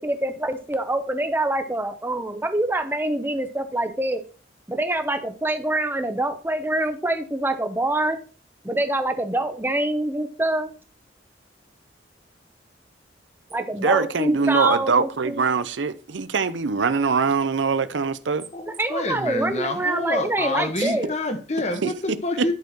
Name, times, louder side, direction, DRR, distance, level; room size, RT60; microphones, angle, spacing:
voice 1, 0.0-4.2 4.7-8.2 8.6-10.7 13.5-15.4 18.7-21.1, right 1 dB, 10° right, 0.8 m, -25 dB
voice 2, 13.8-18.4 21.8-21.9 22.4-22.5, right 5 dB, 85° right, 0.6 m, -22 dB
voice 3, 18.5-22.5, left 2 dB, 40° left, 1.2 m, -28 dB
11.0 x 4.5 x 4.5 m
head